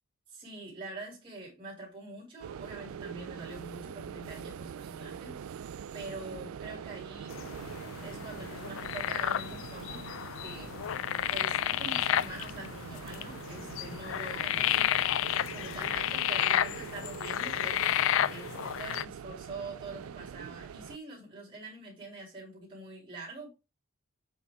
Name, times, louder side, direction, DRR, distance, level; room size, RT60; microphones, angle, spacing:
voice 1, 0.3-5.6 5.9-7.3 8.0-10.1 10.4-10.7 11.3-15.0 15.5-23.5, right 2 dB, 25° right, 3.0 m, -45 dB
sound 1, 2.4-21.0, right 7 dB, 90° right, 0.3 m, -43 dB
sound 2, 7.3-19.1, left 11 dB, 70° left, 0.3 m, -32 dB
7.0 x 5.3 x 3.5 m
head